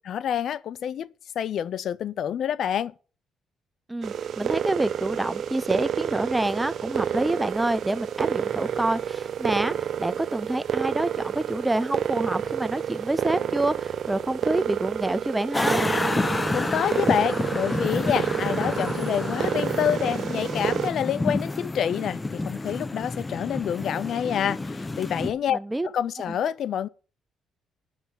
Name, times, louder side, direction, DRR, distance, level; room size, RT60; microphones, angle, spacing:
voice 1, 0.1-1.1 1.4-2.9 16.5-25.6 25.8-26.9, left 9 dB, 65° left, 0.5 m, -27 dB
voice 2, 3.9-15.8 25.5-25.9 26.3-26.4, right 1 dB, 10° right, 0.8 m, -27 dB
sound 1, 4.0-20.9, right 9 dB, 60° right, 0.7 m, -29 dB
sound 2, 15.5-25.3, left 2 dB, 20° left, 0.8 m, -29 dB
9.1 x 7.0 x 8.6 m
cardioid pair, 90°, 0 cm